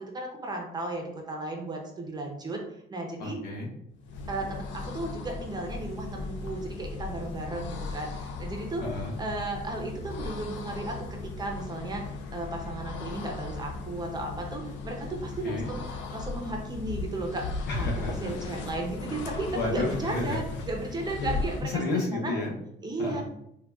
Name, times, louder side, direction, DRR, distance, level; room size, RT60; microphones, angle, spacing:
voice 1, 0.1-1.0 1.3-2.6 2.9-3.4 4.3-4.6 4.9-8.1 8.4-8.8 9.2-10.9 11.4-12.0 12.3-14.9 15.4-15.8 16.1-17.4 17.7-21.8 22.2-22.3 22.8-23.2, right 2 dB, 20° right, 1 dB, 0.5 m, -34 dB
voice 2, 3.2-3.7 8.8-9.2 15.4-15.7 17.7-18.3 19.5-20.4 21.2-22.5 23.0-23.2, left 3 dB, 65° left, -1 dB, 0.8 m, -31 dB
sound 1, 4.0-21.8, left 3 dB, 85° left, 0.4 m, -37 dB
3.6 x 2.2 x 2.3 m, 0.77 s
cardioid pair, 155°, 19 cm